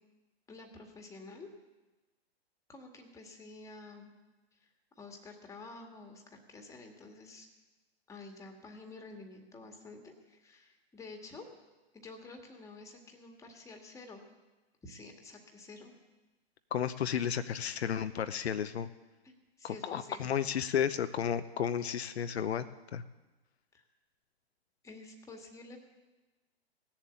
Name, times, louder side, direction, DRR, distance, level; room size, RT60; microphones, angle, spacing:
voice 1, 0.5-1.5 2.7-4.1 4.5-7.5 8.1-11.5 11.9-14.2 14.8-15.9 19.2-20.5 23.7-23.8 24.8-25.8, left 3 dB, 10° left, 3 dB, 1.8 m, -50 dB
voice 2, 16.7-18.9 19.6-22.6 22.9-23.0, left 8 dB, 75° left, 10 dB, 0.9 m, -32 dB
17.5 x 7.4 x 8.4 m, 1.2 s
hypercardioid pair, 130°, 32 cm